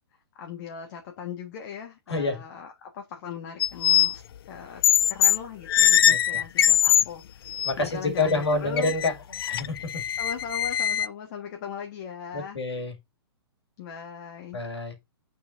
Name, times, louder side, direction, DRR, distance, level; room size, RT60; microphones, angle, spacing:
voice 1, 0.3-4.8 5.1-8.3 8.6-8.9 10.2-12.6 13.8-14.6, left 7 dB, 45° left, 1.4 m, -39 dB
voice 2, 2.1-2.4 6.1-6.4 7.6-9.1 9.4-10.0 12.3-12.9 14.5-14.9, left 3 dB, 80° left, 2.2 m, -27 dB
sound 1, 3.6-4.1 4.8-5.4 5.7-7.0 7.5-7.7 8.2-8.3 8.8-11.1, left 10 dB, 60° left, 0.4 m, -21 dB
9.2 x 4.1 x 2.6 m
hypercardioid pair, 125°, 14 cm